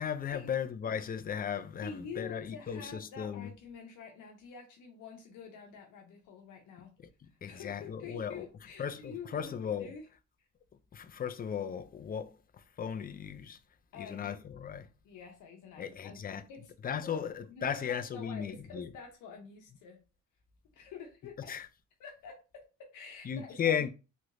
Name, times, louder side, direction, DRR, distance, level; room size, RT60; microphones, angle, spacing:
voice 1, 0.0-3.5 7.4-8.5 8.8-9.9 10.9-12.3 12.8-13.6 14.0-14.9 15.8-16.4 16.8-18.9 21.5-21.6 23.3-23.9, left 8 dB, 30° left, 0.4 m, -36 dB
voice 2, 1.8-6.9 7.2-10.1 13.9-14.4 15.0-20.0 20.7-21.5 22.0-23.9, left 5 dB, 80° left, 0.8 m, -48 dB
3.1 x 2.9 x 2.5 m
cardioid pair, 90°, 30 cm